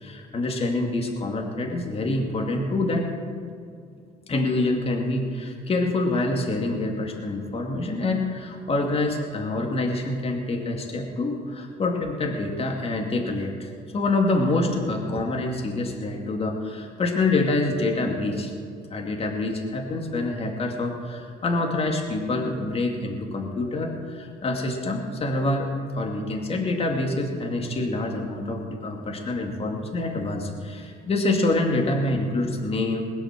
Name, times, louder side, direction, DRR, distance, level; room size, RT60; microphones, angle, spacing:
voice 1, 0.0-3.1 4.3-18.5 18.9-33.0, left 2 dB, 35° left, 1 dB, 2.4 m, -26 dB
21.0 x 8.0 x 7.5 m, 2.3 s
cardioid pair, 110°, 17 cm